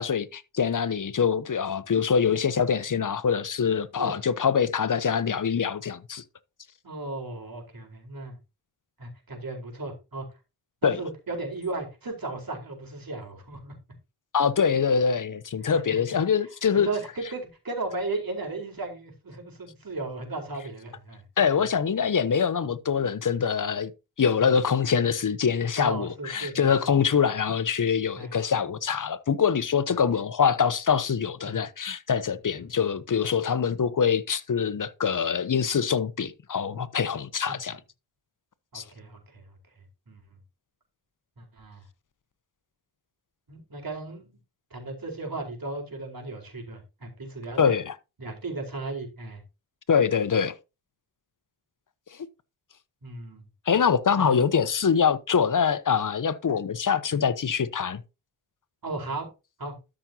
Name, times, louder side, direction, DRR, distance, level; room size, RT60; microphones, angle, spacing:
voice 1, 0.0-6.2 10.8-11.0 14.3-16.9 21.4-23.9 24.2-37.8 38.7-38.8 47.6-47.9 49.9-50.5 53.7-58.0, left 6 dB, 40° left, 1.0 m, -24 dB
voice 2, 6.8-8.4 9.0-10.3 10.8-13.7 15.7-16.2 16.7-21.2 24.4-24.6 25.8-26.9 28.1-28.5 31.4-31.6 32.6-32.7 37.5-37.6 38.7-39.6 40.1-40.4 41.4-41.8 43.5-44.4 44.7-47.8 48.2-49.4 53.0-53.4 54.1-54.4 58.8-59.3 59.6-59.7, right 2 dB, 45° right, 4.4 m, -36 dB
13.0 x 6.3 x 2.9 m
cardioid pair, 60°, 48 cm